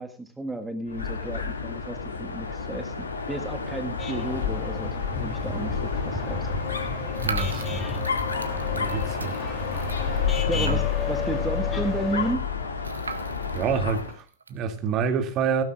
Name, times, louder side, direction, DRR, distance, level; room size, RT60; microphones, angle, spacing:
voice 1, 0.0-6.5 10.5-12.4, right 2 dB, 10° right, 1.6 m, -33 dB
Dog, 0.9-14.2, left 6 dB, 75° left, 2.3 m, -30 dB
Muezzin on a busy street in Giza (short recording), 4.0-12.3, left 4 dB, 20° left, 3.1 m, -34 dB
sound 1, 7.1-11.2 11.6-11.7 11.9-12.0 12.8-14.6, right 5 dB, 75° right, 1.2 m, -38 dB
voice 2, 7.2-7.8 8.7-9.4 10.0-10.8 13.5-15.6, right 6 dB, 35° right, 2.5 m, -28 dB
17.5 x 16.5 x 2.5 m
figure-of-eight pair, 90°, 0 cm